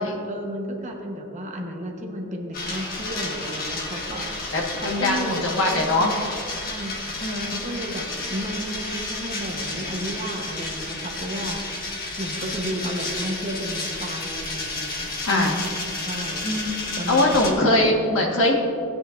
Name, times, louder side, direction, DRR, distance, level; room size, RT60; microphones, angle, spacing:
voice 1, 0.2-6.3 6.6-7.2 7.5-8.0 8.3-11.6 11.9-15.7 16.1-16.5 17.0-18.0, equal, 35° right, 1 dB, 1.0 m, -33 dB
sound 1, 2.5-17.5, left 2 dB, 40° left, 1.5 m, -31 dB
voice 2, 4.5-6.1 7.2-7.5 15.2-15.6 16.4-16.7 17.1-18.5, left 1 dB, 70° left, 0 dB, 1.5 m, -22 dB
16.5 x 8.8 x 2.5 m, 2.5 s
head